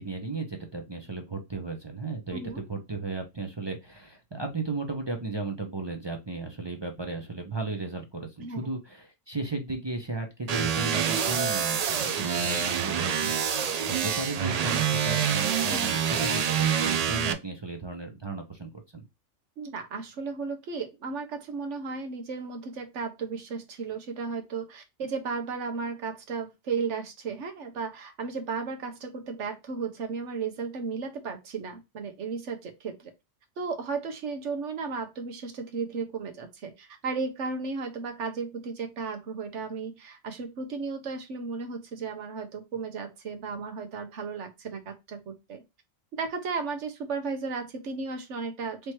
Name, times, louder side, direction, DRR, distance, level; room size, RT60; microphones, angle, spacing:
voice 1, 0.0-19.0, right 3 dB, 25° right, 4 dB, 0.6 m, -35 dB
voice 2, 2.3-2.6 8.4-8.7 15.7-15.9 19.6-33.1 33.6-45.6 46.1-48.9, right 4 dB, 70° right, 6 dB, 1.3 m, -34 dB
sound 1, 10.5-17.3, right 8 dB, 85° right, 0.3 m, -26 dB
3.3 x 3.1 x 4.4 m, 0.22 s
omnidirectional pair, 1.3 m